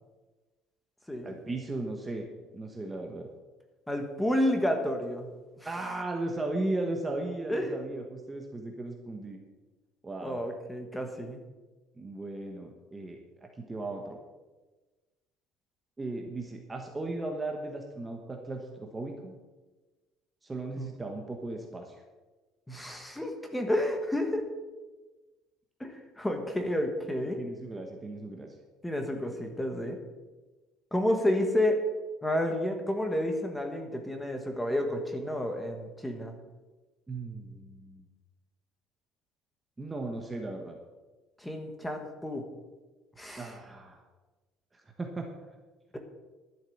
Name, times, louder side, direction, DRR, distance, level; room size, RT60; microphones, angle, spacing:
voice 1, 1.2-2.2 2.5-3.3 5.6-9.4 10.0-10.4 12.0-13.2 13.6-14.2 16.0-19.3 20.4-22.0 27.4-28.5 37.1-38.0 39.8-40.8 43.4-44.0 45.0-45.3, right 2 dB, 10° right, 2 dB, 1.1 m, -36 dB
voice 2, 3.9-5.3 5.6-5.7 7.5-7.8 10.2-11.4 20.8-20.9 22.7-24.4 25.8-27.4 28.8-30.0 30.9-31.8 32.2-36.3 41.4-42.5 43.2-43.5, left 1 dB, 5° left, 5 dB, 1.4 m, -30 dB
11.5 x 7.5 x 7.7 m, 1.2 s
cardioid pair, 165°, 0 cm